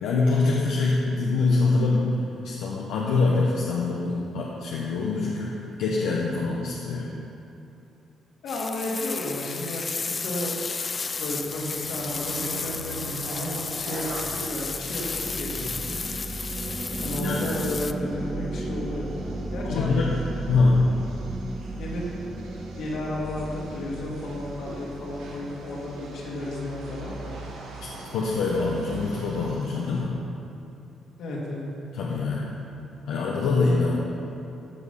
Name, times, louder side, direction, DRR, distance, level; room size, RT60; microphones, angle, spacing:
voice 1, 0.0-2.1 2.4-7.1 17.2-17.5 19.6-20.1 20.5-20.8 27.8-30.2 31.9-32.5 33.1-34.0, left 3 dB, 90° left, -4 dB, 1.1 m, -24 dB
voice 2, 8.4-10.6 11.2-15.9 17.0-19.1 19.5-19.9 21.8-22.0 22.8-27.3 31.2-31.7, left 1 dB, 75° left, -3 dB, 2.4 m, -33 dB
sound 1, 8.5-17.9, left 4 dB, 35° left, 0.4 m, -33 dB
sound 2, 11.0-30.0, right 2 dB, 85° right, 1.5 m, -43 dB
sound 3, 12.1-26.6, right 2 dB, 20° right, 0.7 m, -36 dB
15.0 x 5.3 x 5.6 m, 2.7 s
cardioid pair, 90°, 0 cm